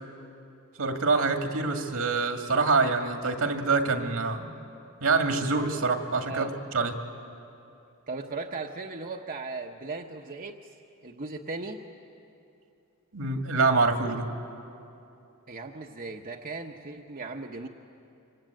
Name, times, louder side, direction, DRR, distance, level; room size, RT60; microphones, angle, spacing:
voice 1, 0.8-4.5 5.0-6.5 6.7-6.9 13.1-14.3, right 4 dB, 75° right, 5 dB, 2.2 m, -25 dB
voice 2, 8.1-10.7 11.0-11.8 15.5-17.7, right 3 dB, 40° right, 2 dB, 1.0 m, -37 dB
25.5 x 24.0 x 9.2 m, 2.7 s
head